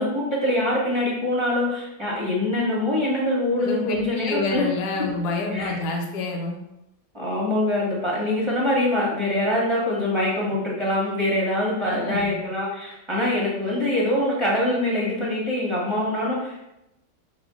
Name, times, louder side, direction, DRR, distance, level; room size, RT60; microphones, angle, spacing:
voice 1, 0.0-4.7 5.5-5.8 7.1-16.6, left 1 dB, 20° right, -6 dB, 0.8 m, -24 dB
voice 2, 3.6-6.6 11.8-12.4, left 3 dB, 70° left, 1 dB, 1.3 m, -28 dB
5.3 x 2.8 x 3.6 m, 0.89 s
omnidirectional pair, 1.9 m